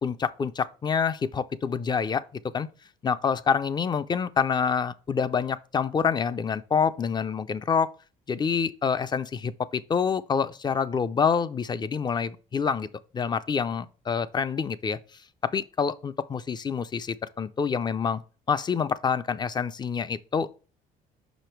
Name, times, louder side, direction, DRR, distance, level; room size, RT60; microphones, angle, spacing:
voice 1, 0.0-2.7 3.0-7.9 8.3-12.9 13.1-15.0 15.4-18.2 18.5-20.5, left 6 dB, 25° left, 0.4 m, -27 dB
5.6 x 5.1 x 4.4 m
cardioid pair, 110°, 17 cm